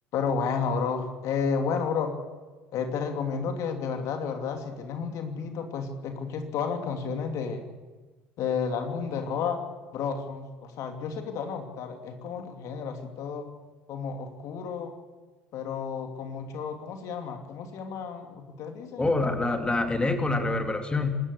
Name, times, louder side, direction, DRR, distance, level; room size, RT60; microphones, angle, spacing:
voice 1, 0.1-2.1 2.7-7.7 8.4-9.6 9.9-13.5 13.9-14.9 15.5-19.1, left 6 dB, 60° left, 5 dB, 2.7 m, -31 dB
voice 2, 19.0-21.2, left 2 dB, 15° left, 6 dB, 2.6 m, -26 dB
26.5 x 13.5 x 8.3 m, 1.3 s
hypercardioid pair, 70°, 6 cm